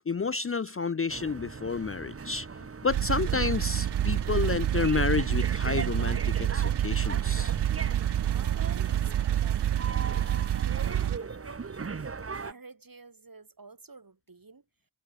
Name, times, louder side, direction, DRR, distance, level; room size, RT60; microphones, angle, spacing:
voice 1, 0.1-2.5 2.8-7.5, left 4 dB, 30° left, 0.6 m, -30 dB
sound 1, 1.1-12.5, right 5 dB, 30° right, 0.9 m, -40 dB
sound 2, 2.9-11.2, right 11 dB, 65° right, 0.6 m, -27 dB
voice 2, 8.0-11.8 12.2-14.6, right 3 dB, 50° right, 5.1 m, -51 dB
cardioid pair, 50°, 44 cm